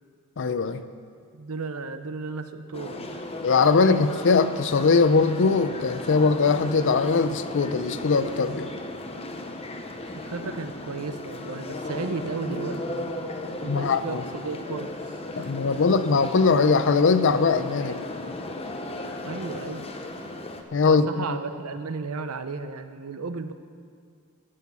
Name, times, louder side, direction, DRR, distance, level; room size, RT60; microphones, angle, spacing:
voice 1, 0.4-0.8 3.4-8.7 13.6-14.2 15.4-18.0 20.7-21.2, left 4 dB, 55° left, 12 dB, 0.5 m, -21 dB
voice 2, 1.3-3.2 3.7-4.2 10.2-13.1 13.6-15.8 17.8-18.0 19.2-19.9 20.8-23.5, right 4 dB, 75° right, 9 dB, 0.7 m, -34 dB
sound 1, 2.7-20.6, left 2 dB, 25° left, 0.8 m, -36 dB
12.0 x 8.3 x 7.1 m, 2.2 s
head